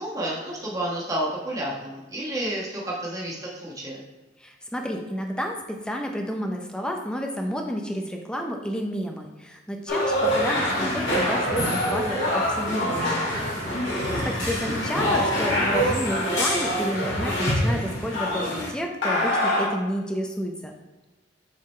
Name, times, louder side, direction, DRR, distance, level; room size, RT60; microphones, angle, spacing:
voice 1, 0.0-4.0 14.0-14.4, right 1 dB, 20° right, -4 dB, 1.2 m, -31 dB
voice 2, 4.4-13.5 14.2-20.7, equal, 5° left, 2 dB, 0.6 m, -30 dB
sound 1, 9.9-18.7 19.0-19.7, equal, 80° left, 2.0 m, -25 dB
7.4 x 3.9 x 3.2 m, 1.1 s
head